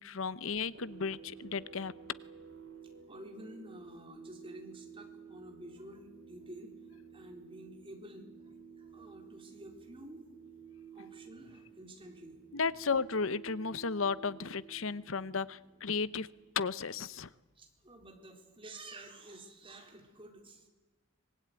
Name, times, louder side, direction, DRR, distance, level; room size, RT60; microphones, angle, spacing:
voice 1, 0.0-1.9 12.5-16.3 16.6-17.3, left 5 dB, 75° left, 18 dB, 0.9 m, -34 dB
sound 1, 0.6-16.9, right 6 dB, 60° right, 2.9 m, -53 dB
voice 2, 3.1-10.2 10.7-12.6 17.5-20.7, right 1 dB, 25° right, 3 dB, 4.2 m, -51 dB
25.0 x 20.0 x 9.6 m, 1.2 s
head